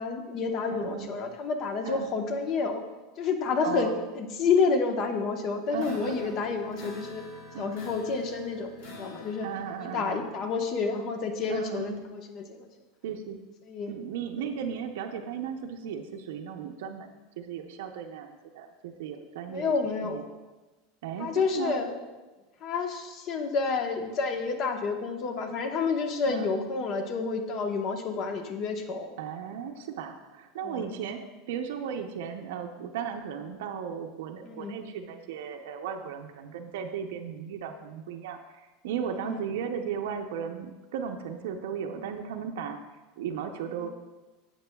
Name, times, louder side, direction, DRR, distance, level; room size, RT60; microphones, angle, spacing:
voice 1, 0.0-2.8 3.2-3.9 4.2-7.2 7.6-8.7 9.0-9.5 9.8-12.7 13.7-13.9 19.5-20.2 21.2-22.0 22.6-29.1 30.6-30.9 34.5-34.8 39.2-39.4 43.8-43.9, left 4 dB, 45° left, 5 dB, 1.0 m, -29 dB
voice 2, 0.7-1.1 1.8-2.1 3.6-3.9 5.7-6.4 7.5-7.7 9.4-10.3 11.5-12.0 13.0-13.4 13.9-19.7 20.0-20.2 21.0-21.8 26.3-26.7 29.2-31.2 31.5-42.8 43.2-43.9, right 7 dB, 80° right, 4 dB, 0.6 m, -36 dB
sound 1, 5.8-10.0, left 3 dB, 70° left, 2.2 m, -46 dB
10.0 x 7.4 x 2.3 m, 1.2 s
supercardioid pair, 120°, 0 cm